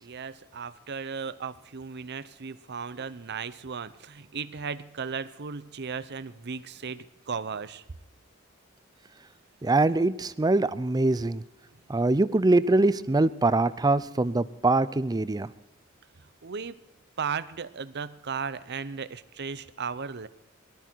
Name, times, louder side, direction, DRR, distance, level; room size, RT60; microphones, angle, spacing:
voice 1, 0.0-7.8 16.4-16.8 17.2-20.3, right 6 dB, 55° right, 14 dB, 0.7 m, -36 dB
voice 2, 9.6-11.4 11.9-15.5, right 2 dB, 20° right, 16 dB, 0.5 m, -23 dB
18.5 x 13.0 x 4.6 m, 0.93 s
head